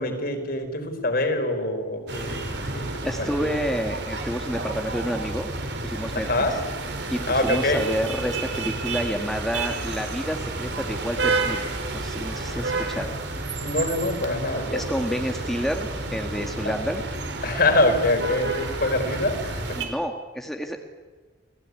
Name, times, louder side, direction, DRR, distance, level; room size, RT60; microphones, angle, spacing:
voice 1, 0.0-2.4 2.7-2.9 3.2-3.5 6.1-6.5 7.3-7.8 12.5-12.8 13.6-15.2 16.6-16.7 17.4-19.8, left 2 dB, 55° left, 6 dB, 4.4 m, -25 dB
sound 1, 2.1-19.9, right 3 dB, 65° right, 4.3 m, -30 dB
voice 2, 3.0-5.5 5.8-6.6 7.1-13.2 14.7-17.0 19.8-20.8, equal, ahead, 3 dB, 1.8 m, -29 dB
28.5 x 18.5 x 9.6 m, 1.4 s
head